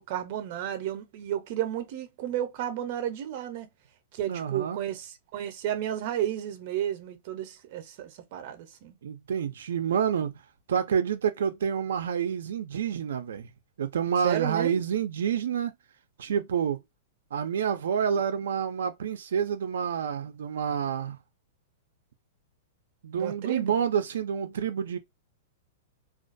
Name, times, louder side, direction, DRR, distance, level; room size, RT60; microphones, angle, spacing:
voice 1, 0.0-3.7 4.1-9.0 14.2-14.8 23.1-23.7, right 11 dB, 45° right, 0.6 m, -32 dB
voice 2, 4.3-4.8 9.0-10.4 10.7-13.5 13.8-15.7 16.2-16.8 17.3-21.2 23.0-25.0, right 7 dB, 90° right, 0.4 m, -28 dB
2.3 x 2.2 x 2.5 m
supercardioid pair, 160°, 0 cm